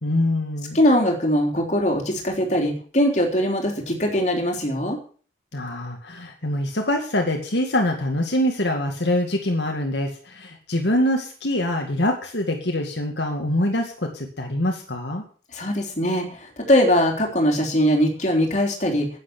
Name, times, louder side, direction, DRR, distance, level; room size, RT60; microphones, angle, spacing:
voice 1, 0.0-0.8 5.5-15.2, left 1 dB, 70° left, 2 dB, 2.1 m, -24 dB
voice 2, 0.7-5.0 15.5-19.1, equal, 40° left, 1 dB, 3.7 m, -21 dB
10.5 x 9.5 x 8.5 m, 0.42 s
head